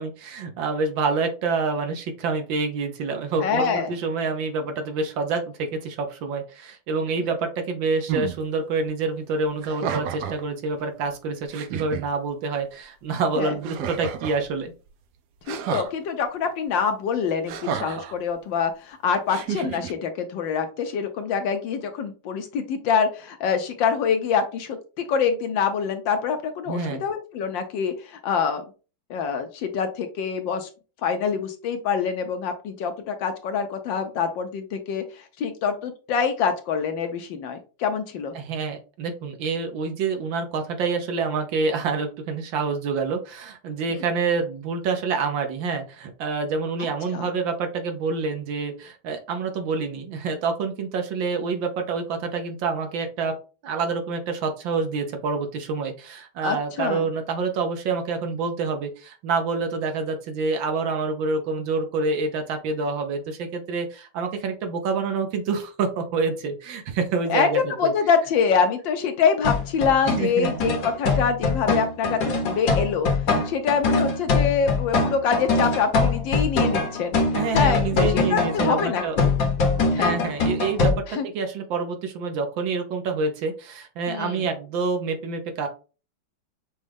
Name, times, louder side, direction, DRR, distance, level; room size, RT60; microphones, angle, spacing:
voice 1, 0.0-14.7 26.7-27.0 38.3-53.4 53.6-67.9 70.0-70.6 77.3-79.2 80.0-85.7, right 4 dB, 70° right, 5 dB, 1.4 m, -27 dB
voice 2, 3.4-3.9 13.4-13.5 15.5-24.8 25.1-28.6 29.1-30.7 31.0-38.3 43.9-44.0 47.1-47.3 56.4-57.0 67.3-73.1 73.4-77.2 77.5-79.2 79.9-80.1 81.1-81.2 84.1-84.4, left 6 dB, 70° left, 6 dB, 1.2 m, -25 dB
sound 1, 8.1-8.4 9.6-10.4 11.1-11.2 11.5-12.0 13.6-14.4 15.5-15.9 17.5-18.1 19.3-19.9, right 8 dB, 85° right, 0.8 m, -30 dB
sound 2, 69.4-80.9, left 3 dB, 55° left, 1.1 m, -23 dB
6.3 x 2.3 x 3.3 m, 0.34 s
omnidirectional pair, 2.3 m